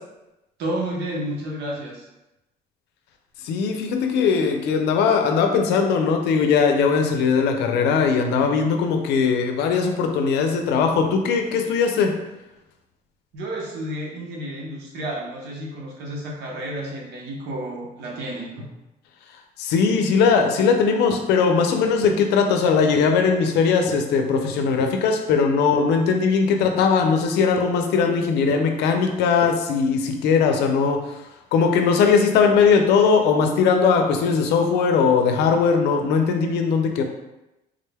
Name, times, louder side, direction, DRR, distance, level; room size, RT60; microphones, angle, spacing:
voice 1, 0.6-2.1 13.3-18.7, right 1 dB, 80° right, -2 dB, 0.9 m, -31 dB
voice 2, 3.4-12.2 19.6-37.0, left 5 dB, 80° left, 5 dB, 0.5 m, -20 dB
sound 1, 21.1-21.2 22.0-22.1 22.9-23.0 23.9-24.0 24.8-24.9 25.7-25.8 26.6-26.7 27.6-27.7 28.5-28.6 29.4-29.5, right 1 dB, ahead, 0.5 m, -33 dB
3.6 x 2.2 x 3.3 m, 0.96 s
cardioid pair, 110°, 17 cm